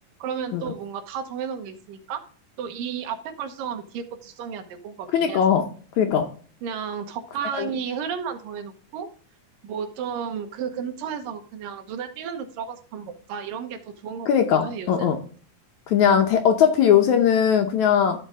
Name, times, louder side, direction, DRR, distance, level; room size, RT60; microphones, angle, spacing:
voice 1, 0.2-2.2 2.6-5.6 6.6-9.1 9.6-14.3 14.6-15.1, right 7 dB, 80° right, 7 dB, 2.8 m, -33 dB
voice 2, 5.1-5.7 6.0-6.3 7.6-7.7 14.3-15.2 15.9-18.3, left 8 dB, 70° left, 5 dB, 2.0 m, -19 dB
14.0 x 4.9 x 3.6 m, 0.42 s
omnidirectional pair, 4.0 m